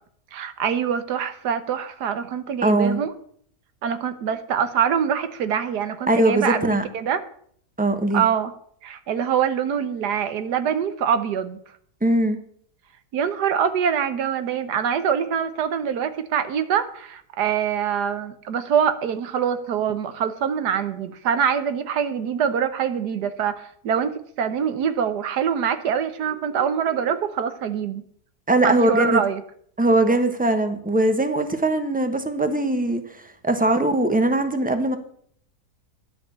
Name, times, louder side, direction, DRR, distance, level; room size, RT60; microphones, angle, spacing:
voice 1, 0.3-3.1 3.8-7.2 8.1-8.5 8.8-11.6 13.1-28.0 28.6-29.4, right 7 dB, 80° right, 11 dB, 1.5 m, -24 dB
voice 2, 2.6-3.0 6.1-6.8 7.8-8.2 12.0-12.4 28.5-29.2 29.8-35.0, right 2 dB, 5° right, 8 dB, 0.9 m, -21 dB
11.0 x 6.5 x 8.5 m, 0.62 s
omnidirectional pair, 1.7 m